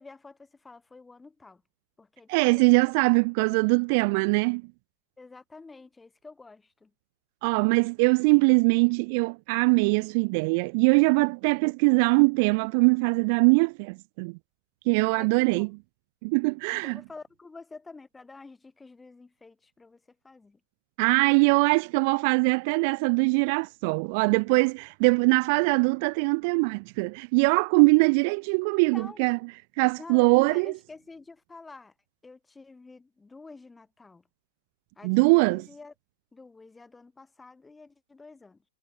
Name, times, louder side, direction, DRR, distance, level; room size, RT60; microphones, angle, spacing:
voice 1, 0.0-1.6 2.0-3.2 5.2-6.9 15.1-15.7 16.8-20.6 28.9-29.3 30.0-31.9 32.2-34.2 35.0-35.9 36.3-38.6, left 3 dB, 10° left, 4.1 m, -48 dB
voice 2, 2.3-4.6 7.4-14.4 14.9-15.7 16.2-17.0 21.0-29.4 29.8-30.7 35.0-35.6, right 31 dB, 50° right, 0.3 m, -22 dB
hypercardioid pair, 115°, 0 cm